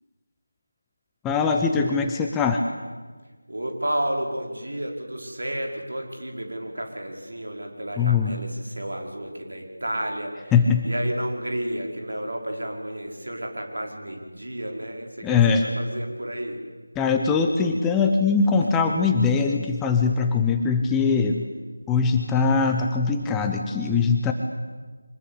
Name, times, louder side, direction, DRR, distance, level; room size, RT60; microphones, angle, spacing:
voice 1, 1.2-2.6 8.0-8.3 10.5-10.8 15.2-15.6 17.0-21.5 21.9-24.3, left 5 dB, 5° left, 4 dB, 0.9 m, -21 dB
voice 2, 3.5-10.6 10.8-16.7 18.6-18.8, right 1 dB, 65° right, 2 dB, 5.3 m, -32 dB
25.0 x 20.0 x 8.6 m, 1.4 s
figure-of-eight pair, 165°, 0 cm